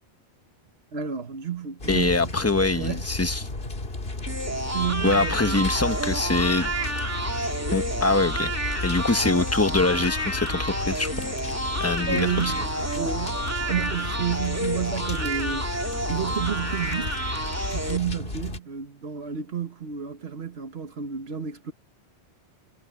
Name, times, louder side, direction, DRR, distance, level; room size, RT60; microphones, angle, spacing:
voice 1, 0.9-2.3 2.8-3.1 4.7-5.7 12.1-15.7 16.1-17.2 17.7-21.7, right 8 dB, 75° right, 1.6 m, -31 dB
sound 1, 1.8-18.6, left 2 dB, 65° left, 2.5 m, -33 dB
voice 2, 1.9-3.5 5.0-6.7 7.7-8.5 8.8-11.3 11.8-12.5, left 3 dB, 15° left, 1.0 m, -24 dB
sound 2, 4.3-18.0, right 1 dB, 15° right, 2.4 m, -30 dB
omnidirectional pair, 1.1 m